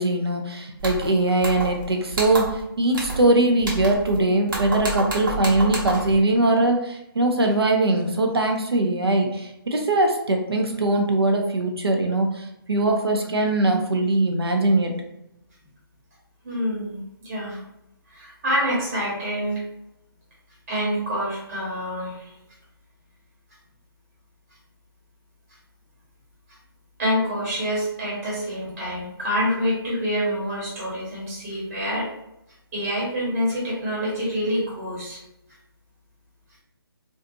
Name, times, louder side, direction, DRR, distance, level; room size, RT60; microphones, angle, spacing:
voice 1, 0.0-14.9, right 2 dB, 90° right, 3 dB, 0.6 m, -21 dB
sound 1, 0.8-1.1 1.4-1.8 2.1-2.6 2.9-3.3 3.6-4.2 4.5-6.2, right 2 dB, 60° right, 0.9 m, -29 dB
voice 2, 16.4-17.6 18.1-19.6 20.7-22.3 27.0-32.1 32.7-35.2, equal, 35° right, -6 dB, 1.1 m, -26 dB
2.6 x 2.3 x 2.6 m, 0.86 s
figure-of-eight pair, 150°, 13 cm